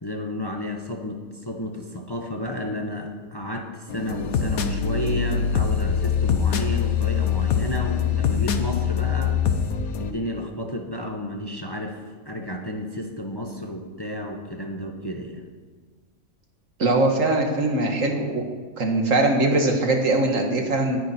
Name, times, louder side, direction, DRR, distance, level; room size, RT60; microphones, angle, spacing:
voice 1, 0.0-9.4 10.0-12.0 12.3-15.4, left 1 dB, 20° left, 3 dB, 1.0 m, -32 dB
sound 1, 3.9-10.1, left 7 dB, 80° left, 1.4 m, -23 dB
voice 2, 16.8-18.4 18.8-21.0, right 2 dB, 65° right, 3 dB, 2.0 m, -21 dB
19.0 x 9.7 x 4.4 m, 1.5 s
omnidirectional pair, 1.5 m